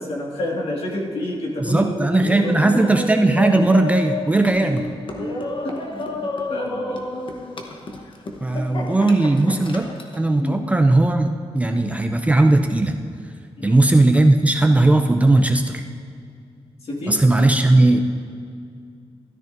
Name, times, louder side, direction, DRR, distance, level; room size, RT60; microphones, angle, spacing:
voice 1, 0.0-2.9 5.6-6.0 6.5-7.1 10.4-10.7 13.6-13.8 16.8-17.2, left 1 dB, 70° left, -2 dB, 1.9 m, -28 dB
voice 2, 1.6-4.9 8.4-11.3 11.5-13.0 13.6-15.8 17.1-18.0, right 2 dB, 15° right, 4 dB, 0.4 m, -17 dB
Laughter, 2.1-10.2, left 2 dB, 55° left, 1.0 m, -30 dB
13.5 x 13.0 x 2.6 m, 2.3 s
wide cardioid pair, 180°, 10 cm